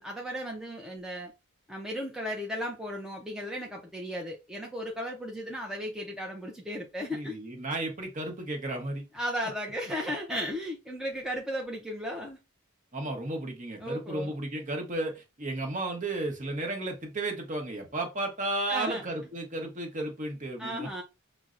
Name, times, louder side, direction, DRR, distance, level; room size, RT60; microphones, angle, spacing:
voice 1, 0.0-1.3 1.7-7.4 9.1-12.4 13.8-14.3 18.7-19.0 20.6-21.0, equal, 5° right, 0.5 m, -35 dB
voice 2, 7.1-9.0 12.9-20.9, right 2 dB, 35° right, 0.9 m, -33 dB
6.0 x 2.0 x 2.4 m
head